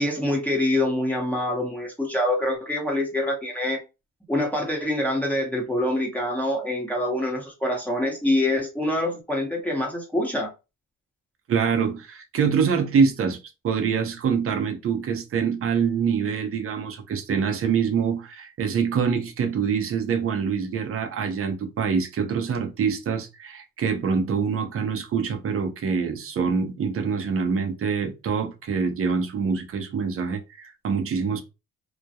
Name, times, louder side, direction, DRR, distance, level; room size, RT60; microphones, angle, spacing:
voice 1, 0.0-3.8 4.3-10.5, left 1 dB, 5° left, 0.9 m, -25 dB
voice 2, 11.5-13.4 13.6-31.4, right 6 dB, 50° right, 0.6 m, -25 dB
2.3 x 2.1 x 2.7 m
cardioid pair, 90°, 30 cm